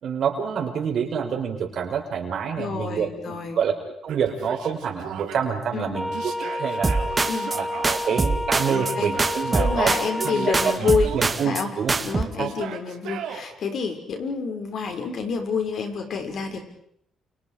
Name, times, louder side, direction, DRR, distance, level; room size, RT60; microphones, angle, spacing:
voice 1, 0.0-3.7 4.0-7.0 7.5-9.9 10.2-11.9 12.2-12.5, right 7 dB, 65° right, 3 dB, 5.0 m, -27 dB
voice 2, 2.6-3.6 5.7-6.0 7.3-7.5 8.7-9.1 9.6-11.1 11.4-11.7 12.0-16.6, left 5 dB, 60° left, 4 dB, 5.8 m, -28 dB
Yell, 4.1-5.4 6.1-7.9 8.7-9.8 10.2-11.4 12.4-13.4, right 9 dB, 85° right, 3.6 m, -36 dB
sound 1, 5.9-10.8, left 1 dB, ahead, 1.1 m, -30 dB
sound 2, 6.8-7.6 7.8-8.9 9.2-10.3 10.5-11.6 11.9-12.2, right 3 dB, 25° right, 1.8 m, -24 dB
29.5 x 28.5 x 5.1 m, 0.68 s
cardioid pair, 90°, 0 cm